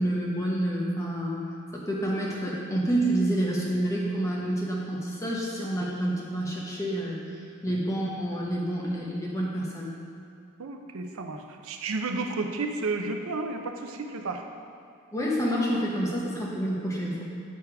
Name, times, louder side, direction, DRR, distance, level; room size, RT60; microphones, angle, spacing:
voice 1, 0.0-1.4 1.7-9.9 15.1-17.2, right 1 dB, 15° left, -4 dB, 0.8 m, -28 dB
voice 2, 10.6-14.4, right 3 dB, 85° right, 5 dB, 0.5 m, -32 dB
8.3 x 3.3 x 4.7 m, 2.5 s
head